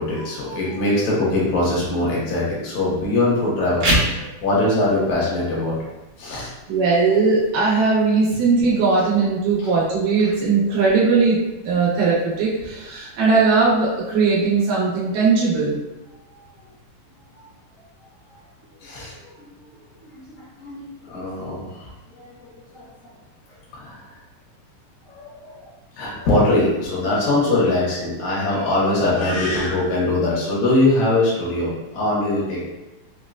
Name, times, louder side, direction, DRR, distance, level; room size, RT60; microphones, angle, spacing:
voice 1, 0.0-5.8 6.2-6.5 9.6-9.7 18.8-19.5 20.0-20.1 20.3-21.9 22.2-23.1 23.7-24.1 25.1-25.6 25.9-32.7, left 2 dB, 75° left, -5 dB, 2.3 m, -22 dB
sound 1, 3.6-14.6, right 1 dB, 70° right, 2.3 m, -32 dB
voice 2, 6.7-11.4 11.6-15.8, right 4 dB, 85° right, -6 dB, 2.7 m, -19 dB
5.7 x 2.2 x 2.4 m, 1.0 s
omnidirectional pair, 3.6 m